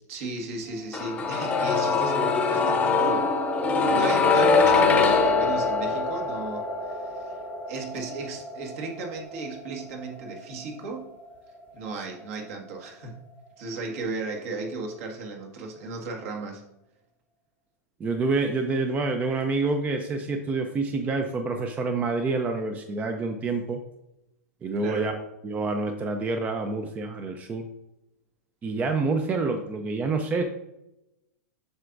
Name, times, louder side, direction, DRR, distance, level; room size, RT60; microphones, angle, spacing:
voice 1, 0.1-3.3 3.9-7.4 7.7-11.1 11.7-13.2 13.6-16.6 24.8-25.0, right 3 dB, 60° right, 1 dB, 1.6 m, -35 dB
sound 1, 0.9-12.8 13.0-13.1, left 4 dB, 15° left, 0.8 m, -24 dB
voice 2, 18.0-23.8 24.6-25.1 25.4-27.7 28.6-30.4, right 3 dB, 15° right, 5 dB, 0.5 m, -27 dB
7.8 x 5.8 x 2.6 m, 0.90 s
hypercardioid pair, 140°, 9 cm